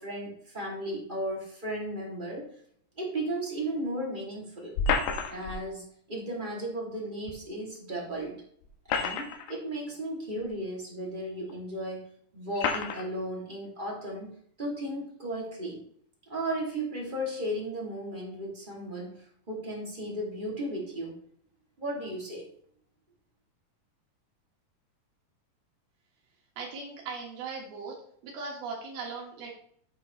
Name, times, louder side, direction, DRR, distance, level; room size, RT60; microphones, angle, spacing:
voice 1, 0.0-2.5 3.0-4.8 5.3-8.4 8.9-14.3 14.6-15.8 16.3-21.1 21.8-22.5, right 1 dB, 15° right, -3 dB, 2.0 m, -35 dB
sound 1, 4.8-5.6 7.3-7.4 8.6-9.6 10.4-10.5 11.5-11.6 12.6-13.1, left 5 dB, 85° left, 3.0 m, -29 dB
voice 2, 26.6-27.9 28.2-29.5, right 4 dB, 80° right, -2 dB, 3.5 m, -38 dB
8.6 x 8.5 x 3.2 m, 0.64 s
omnidirectional pair, 4.3 m